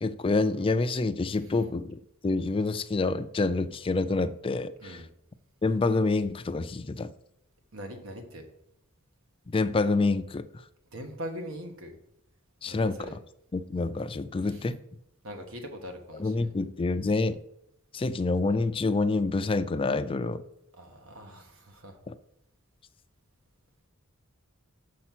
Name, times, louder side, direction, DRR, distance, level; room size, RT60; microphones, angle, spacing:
voice 1, 0.0-5.0 5.6-7.1 9.5-10.5 12.6-13.2 13.5-14.8 16.1-17.4 17.9-20.4 22.1-22.2, left 3 dB, 25° left, 0.4 m, -27 dB
voice 2, 7.7-8.5 10.9-12.0 12.7-13.2 14.4-14.6 15.2-16.5 20.8-22.0, equal, 75° right, 1.4 m, -41 dB
6.9 x 5.6 x 6.0 m
head